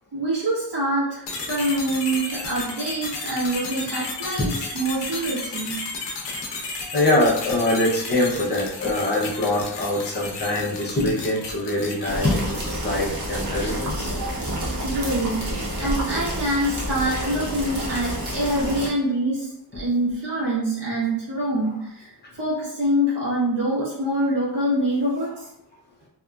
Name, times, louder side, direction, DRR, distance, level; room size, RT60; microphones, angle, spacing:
voice 1, 0.1-5.8 14.2-14.3 14.8-25.5, right 1 dB, 70° right, -8 dB, 1.1 m, -25 dB
sound 1, 1.3-12.8, left 3 dB, 80° left, 0.7 m, -33 dB
voice 2, 6.9-14.1, left 1 dB, 25° left, -3 dB, 0.6 m, -23 dB
sound 2, 12.1-18.9, right 1 dB, 45° right, 0.8 m, -29 dB
2.8 x 2.3 x 2.3 m, 0.78 s
wide cardioid pair, 150°, 42 cm